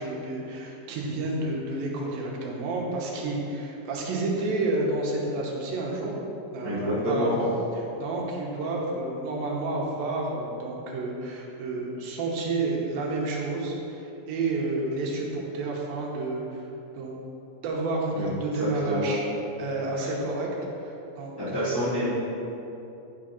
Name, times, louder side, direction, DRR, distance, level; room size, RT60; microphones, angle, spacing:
voice 1, 0.0-6.1 6.5-7.5 7.8-16.6 16.9-17.2 17.6-19.2 19.6-20.5 20.8-21.8, right 2 dB, 80° right, -2 dB, 2.7 m, -30 dB
voice 2, 6.6-7.3 18.2-18.3 18.9-19.1 20.0-20.1 21.4-22.1, equal, 40° left, -13 dB, 1.5 m, -27 dB
9.3 x 3.8 x 5.7 m, 2.9 s
omnidirectional pair, 4.2 m